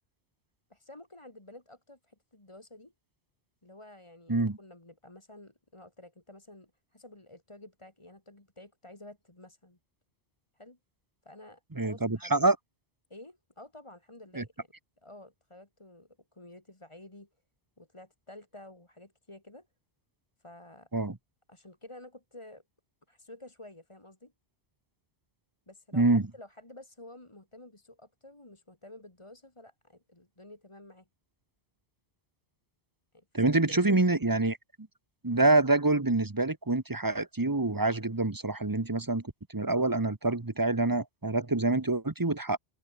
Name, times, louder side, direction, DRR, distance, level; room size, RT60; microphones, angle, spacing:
voice 1, 0.7-2.9 3.6-9.8 10.5-10.8 11.2-12.3 13.1-14.7 15.0-17.3 17.8-19.7 20.4-20.9 21.5-22.6 23.1-24.3 25.7-31.1 33.1-34.0, left 1 dB, 25° left, 2.6 m, -51 dB
voice 2, 11.8-12.6 14.3-14.4 20.9-21.2 25.9-26.2 33.3-34.6 35.2-39.2 39.5-42.6, right 2 dB, 20° right, 1.1 m, -26 dB
open air
omnidirectional pair, 1.1 m